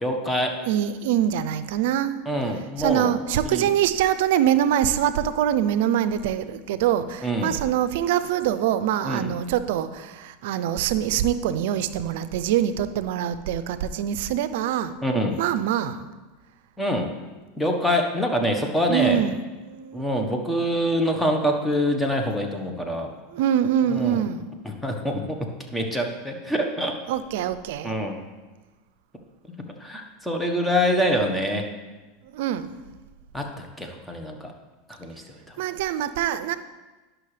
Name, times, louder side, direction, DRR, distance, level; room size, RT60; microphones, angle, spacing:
voice 1, 0.0-0.6 2.3-3.2 3.4-3.7 7.2-7.5 9.1-9.3 15.0-15.4 16.8-17.1 17.6-19.2 19.9-23.1 23.9-24.2 24.6-27.0 27.8-28.2 29.8-31.7 33.3-34.5 35.0-35.3, equal, 5° left, 3 dB, 1.2 m, -25 dB
voice 2, 0.7-2.2 2.8-14.9 15.4-16.1 18.9-20.1 23.3-24.5 27.1-27.9 32.2-32.7 35.6-36.6, right 10 dB, 70° right, 13 dB, 0.5 m, -24 dB
11.0 x 6.1 x 3.3 m, 1.2 s
hypercardioid pair, 105°, 0 cm